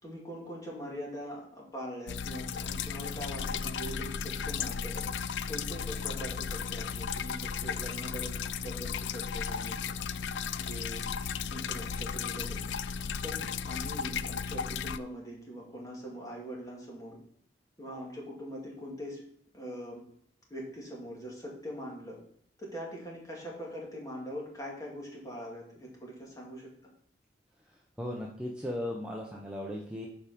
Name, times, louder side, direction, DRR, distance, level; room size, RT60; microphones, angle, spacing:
voice 1, 0.0-10.0 10.6-11.0 11.5-12.7 13.2-17.2 17.8-19.2 19.5-20.0 20.5-22.2 22.6-26.7, equal, 20° left, -3 dB, 2.2 m, -42 dB
sound 1, 2.1-15.0, left 6 dB, 70° left, 0.4 m, -35 dB
voice 2, 28.0-30.1, left 1 dB, 5° right, -2 dB, 0.8 m, -36 dB
7.2 x 5.1 x 5.1 m, 0.67 s
head